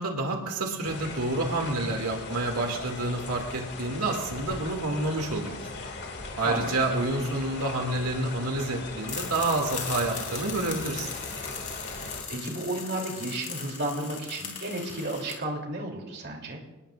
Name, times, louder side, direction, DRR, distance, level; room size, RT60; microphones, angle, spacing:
voice 1, 0.0-5.8 6.4-11.2, right 2 dB, 85° right, 1 dB, 2.5 m, -29 dB
sound 1, 0.8-12.2, left 3 dB, 50° left, 2.3 m, -39 dB
voice 2, 6.4-6.7 11.9-16.6, right 2 dB, 50° right, 1 dB, 3.2 m, -33 dB
sound 2, 9.1-15.3, left 6 dB, 35° left, 3.7 m, -38 dB
28.0 x 20.0 x 2.5 m, 1.1 s
head